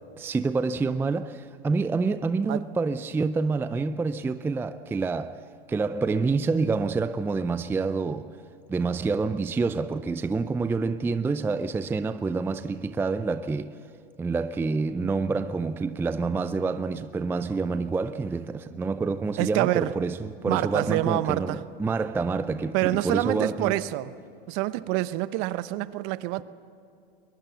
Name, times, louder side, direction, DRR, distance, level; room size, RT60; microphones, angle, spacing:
voice 1, 0.2-5.4 5.7-8.3 8.7-13.8 14.2-23.8, right 4 dB, 10° right, 0.5 m, -27 dB
voice 2, 19.4-19.9 20.4-21.6 22.7-24.1 24.5-26.4, right 16 dB, 45° right, 0.9 m, -26 dB
22.0 x 22.0 x 6.9 m
hypercardioid pair, 105°, 29 cm